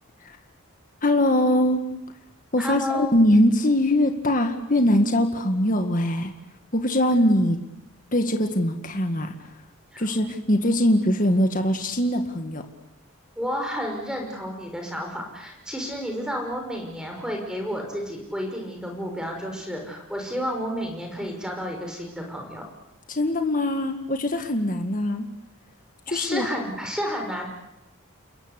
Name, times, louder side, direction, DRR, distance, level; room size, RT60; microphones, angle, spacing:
voice 1, 1.0-1.8 2.5-6.3 6.7-7.6 8.1-9.3 10.0-12.6 23.1-25.3 26.1-26.5, left 1 dB, 40° left, 5 dB, 1.9 m, -22 dB
voice 2, 2.6-3.2 9.9-10.1 13.4-22.6 26.1-27.5, equal, 5° right, 2 dB, 5.8 m, -31 dB
29.5 x 21.5 x 8.3 m, 0.89 s
head